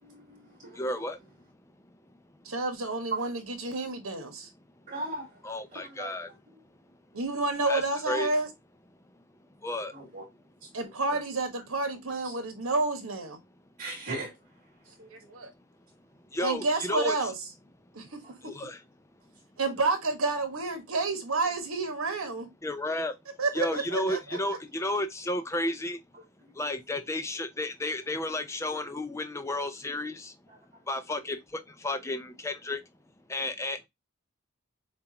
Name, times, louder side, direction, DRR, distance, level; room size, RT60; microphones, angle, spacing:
voice 1, 0.0-0.9 3.1-3.3 4.9-5.4 5.7-6.4 9.9-10.2 10.6-10.7 11.1-11.2 12.2-12.3 13.8-14.3 14.8-15.1 18.2-18.3 26.1-26.2 30.5-30.6, right 3 dB, 35° right, 2.8 m, -38 dB
voice 2, 0.8-1.2 5.4-6.3 7.7-8.3 9.6-9.9 16.3-17.2 18.5-18.8 22.6-23.1 23.5-26.0 26.6-30.3 30.9-32.8 33.3-33.9, left 1 dB, 15° left, 0.5 m, -32 dB
voice 3, 2.4-4.5 7.1-8.5 10.7-13.4 15.1-15.5 16.4-17.3 17.9-18.1 19.6-22.5 23.4-24.2, right 3 dB, 80° right, 1.4 m, -30 dB
6.8 x 2.5 x 2.9 m
head